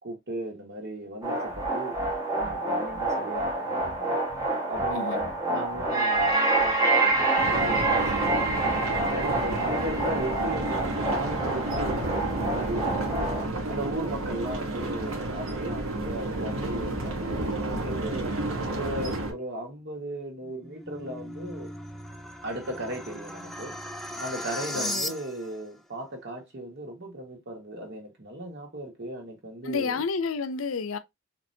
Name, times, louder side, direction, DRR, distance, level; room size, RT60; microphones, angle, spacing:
voice 1, 0.0-2.0 2.3-4.2 4.7-8.8 9.1-13.2 13.7-18.3 18.7-21.7 22.4-23.8 24.2-30.0, right 1 dB, 55° right, 1.6 m, -37 dB
sound 1, 1.2-13.5, right 2 dB, 15° right, 1.1 m, -27 dB
voice 2, 4.9-5.2 24.7-25.1 29.6-31.0, left 5 dB, 75° left, 0.5 m, -30 dB
sound 2, 7.4-19.3, right 2 dB, 85° right, 1.1 m, -31 dB
sound 3, 20.4-25.6, left 1 dB, ahead, 0.3 m, -37 dB
4.3 x 3.0 x 2.7 m
head